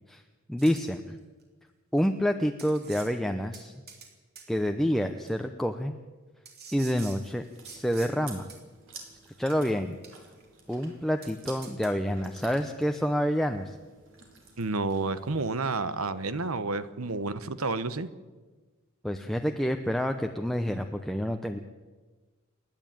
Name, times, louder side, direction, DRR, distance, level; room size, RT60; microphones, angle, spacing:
voice 1, 0.5-1.2 1.9-3.7 4.5-5.9 6.7-8.5 9.4-10.0 10.7-13.8 19.0-21.6, equal, ahead, 5 dB, 0.7 m, -28 dB
sound 1, 0.6-0.9 2.0-2.1 2.6-3.1 3.5-4.1 4.4-4.5 5.3-5.4 6.5-8.1 8.5-8.6 9.5-9.7 10.0-10.4 10.7-10.8 11.2-11.3 11.6-11.9, right 5 dB, 50° right, 3.5 m, -47 dB
Chewing mastication, 6.7-15.6, right 4 dB, 65° right, 4.3 m, -52 dB
voice 2, 14.6-18.1, right 3 dB, 85° right, 13 dB, 1.1 m, -30 dB
28.5 x 10.5 x 9.0 m, 1.3 s
head